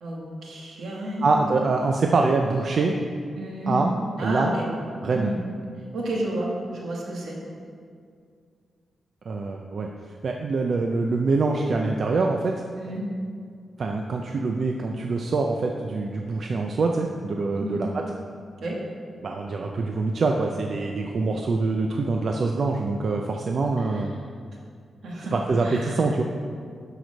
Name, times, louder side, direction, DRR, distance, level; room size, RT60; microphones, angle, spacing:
voice 1, 0.0-1.7 3.4-3.8 4.2-4.7 5.1-5.4 5.9-7.4 12.8-13.1 17.6-17.8 18.6-18.8 23.8-24.1 25.0-25.3 25.6-26.0, right 1 dB, 75° right, -3 dB, 2.1 m, -31 dB
voice 2, 1.2-3.0 3.7-3.9 4.2-4.5 5.0-5.3 9.3-9.9 10.2-12.6 13.8-18.0 19.2-24.1 25.3-26.2, right 3 dB, 50° right, 2 dB, 0.5 m, -24 dB
12.5 x 4.9 x 5.3 m, 2.2 s
wide cardioid pair, 160°, 0 cm